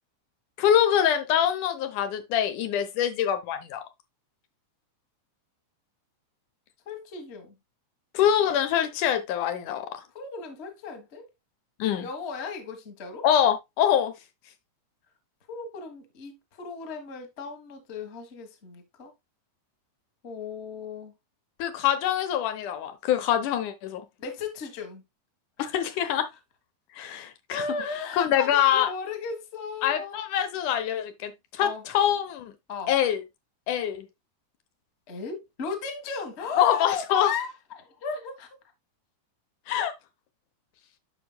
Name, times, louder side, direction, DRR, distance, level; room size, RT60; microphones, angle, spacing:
voice 1, 0.6-3.8 8.1-10.0 11.8-12.1 13.2-14.1 21.6-24.0 25.7-26.3 27.0-27.7 28.2-28.9 29.8-32.5 32.9-33.2 33.7-34.1 36.6-37.3 39.7-39.9, left 10 dB, 85° left, 2.5 m, -24 dB
voice 2, 6.8-7.6 10.1-11.3 12.0-13.2 15.5-19.1 20.2-21.1 24.2-25.0 25.6-25.8 27.5-30.2 31.6-31.8 32.7-32.9 35.1-38.5, left 5 dB, 35° left, 1.0 m, -35 dB
12.0 x 5.0 x 2.2 m
omnidirectional pair, 3.5 m